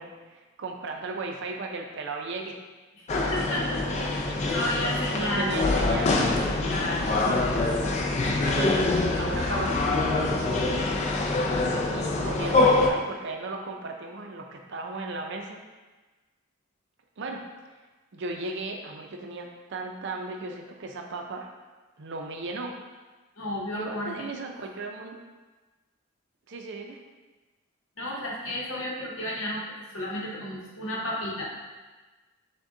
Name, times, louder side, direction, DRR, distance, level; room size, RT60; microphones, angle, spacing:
voice 1, 0.0-2.6 3.2-4.5 5.1-6.2 8.2-11.0 11.9-15.6 17.2-17.4 18.1-21.5 22.0-22.8 23.7-25.2 26.5-27.0, right 3 dB, 55° right, 3 dB, 0.5 m, -36 dB
voice 2, 3.1-4.2 4.5-5.5 6.4-7.1 23.4-24.3 28.0-29.6 29.9-31.5, left 1 dB, 65° left, -4 dB, 0.8 m, -32 dB
sound 1, 3.1-12.9, left 2 dB, 30° left, 0.4 m, -25 dB
6.1 x 2.2 x 3.8 m, 1.2 s
head